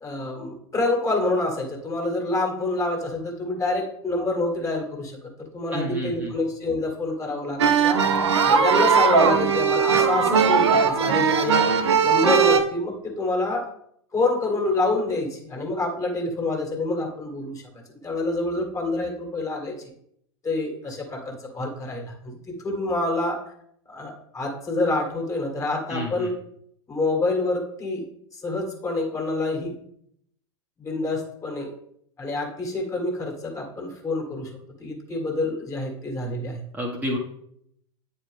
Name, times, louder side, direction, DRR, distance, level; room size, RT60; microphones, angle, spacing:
voice 1, 0.0-8.0 8.4-13.7 14.1-17.6 18.0-19.8 20.4-23.4 23.9-26.3 26.9-28.0 28.3-29.7 30.8-31.7 32.2-34.5 34.8-36.6, left 2 dB, 20° left, 1 dB, 1.8 m, -27 dB
voice 2, 5.7-6.3 25.9-26.3 36.7-37.2, equal, 10° right, -1 dB, 1.2 m, -29 dB
sound 1, 7.6-12.6, right 6 dB, 75° right, 0.7 m, -19 dB
8.9 x 4.4 x 3.4 m, 0.71 s
figure-of-eight pair, 85°, 15 cm